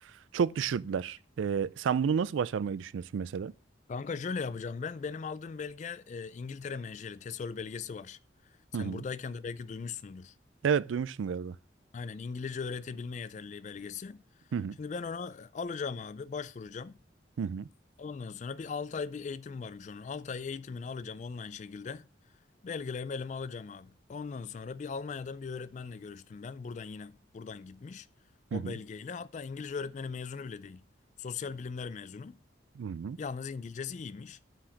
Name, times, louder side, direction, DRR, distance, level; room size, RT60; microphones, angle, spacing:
voice 1, 0.3-3.5 8.7-9.0 10.6-11.5 14.5-14.8 17.4-17.7 28.5-28.7 32.8-33.2, right 6 dB, 85° right, 0.4 m, -31 dB
voice 2, 3.9-8.2 8.7-10.3 11.9-14.2 14.8-17.0 18.0-22.1 22.6-28.1 28.5-30.8 31.2-32.4 33.2-34.4, left 5 dB, 40° left, 0.3 m, -39 dB
5.8 x 5.0 x 6.3 m
head